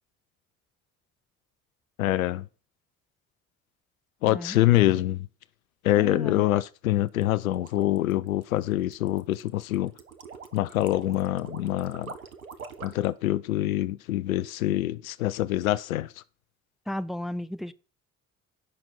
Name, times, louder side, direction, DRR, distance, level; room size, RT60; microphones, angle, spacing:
voice 1, 2.0-2.5 4.2-5.3 5.8-9.9 10.5-12.1 12.8-16.1, left 15 dB, 75° left, 0.6 m, -25 dB
voice 2, 4.2-4.6 6.0-6.4 16.9-17.7, left 1 dB, ahead, 0.6 m, -34 dB
sound 1, 7.1-13.1, right 5 dB, 85° right, 0.9 m, -45 dB
16.5 x 5.9 x 4.3 m
figure-of-eight pair, 45°, 42 cm